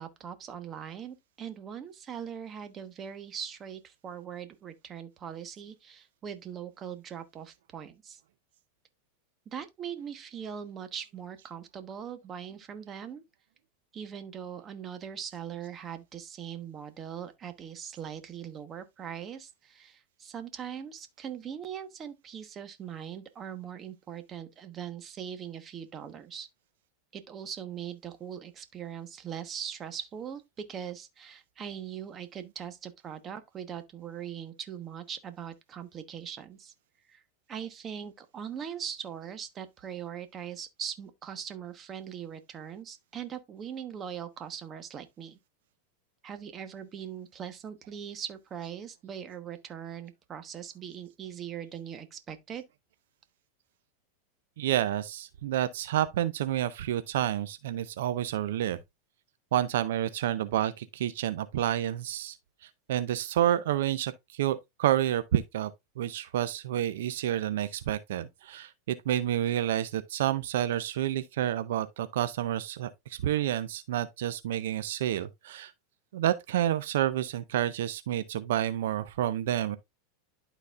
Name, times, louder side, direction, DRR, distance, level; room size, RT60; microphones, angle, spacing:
voice 1, 0.0-8.2 9.5-13.2 13.9-26.5 27.1-36.7 37.1-37.2 37.5-45.4 46.2-52.6, right 8 dB, 30° right, 1.1 m, -41 dB
voice 2, 54.6-58.8 59.5-62.4 62.9-65.7 66.0-75.7 76.1-79.8, right 12 dB, 80° right, 0.5 m, -29 dB
12.0 x 4.1 x 2.4 m
supercardioid pair, 125°, 0 cm